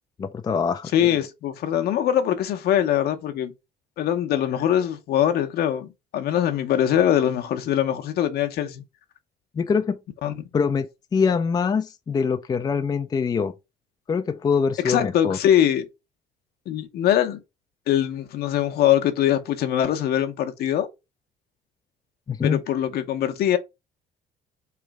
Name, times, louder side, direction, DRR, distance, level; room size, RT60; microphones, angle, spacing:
voice 1, 0.2-0.9 9.6-10.0 10.5-13.5 14.1-15.4 22.3-22.6, left 5 dB, 25° left, 0.4 m, -24 dB
voice 2, 0.9-3.5 4.0-8.8 10.2-10.6 14.8-15.9 16.7-17.4 17.9-20.9 22.4-23.6, left 11 dB, 70° left, 0.8 m, -22 dB
3.3 x 3.0 x 4.7 m
cardioid pair, 110°, 17 cm